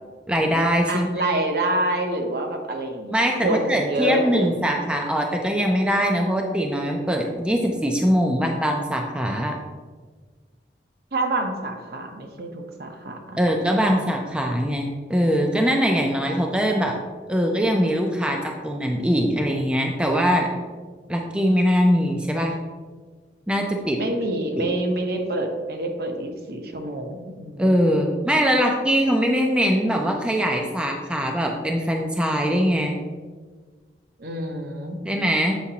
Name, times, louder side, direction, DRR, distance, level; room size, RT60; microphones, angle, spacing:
voice 1, 0.3-1.1 3.1-9.6 13.4-16.9 17.3-20.5 21.1-22.6 23.5-24.0 24.6-24.7 27.6-33.0 35.0-35.5, equal, 5° right, 1 dB, 0.4 m, -22 dB
voice 2, 0.9-4.7 11.1-13.9 24.0-27.8 34.2-35.0, right 1 dB, 60° right, 3 dB, 0.8 m, -27 dB
7.1 x 4.8 x 2.8 m, 1.4 s
head